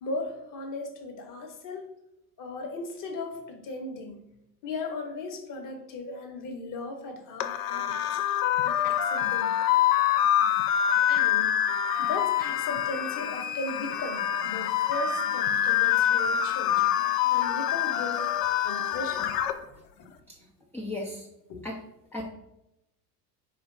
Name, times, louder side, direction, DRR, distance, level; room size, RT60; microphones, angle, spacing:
voice 1, 0.0-1.9 2.4-4.2 4.6-8.2 8.6-9.5 11.1-11.5 12.0-16.8 17.3-18.3 18.6-19.4 21.5-21.6, left 3 dB, 40° left, 4 dB, 1.2 m, -37 dB
sound 1, 7.4-19.5, left 10 dB, 70° left, 0.6 m, -26 dB
voice 2, 20.7-21.3 21.6-21.8 22.1-22.3, left 1 dB, 5° left, -2 dB, 0.4 m, -35 dB
4.4 x 3.1 x 3.8 m, 0.88 s
hypercardioid pair, 80°, 50 cm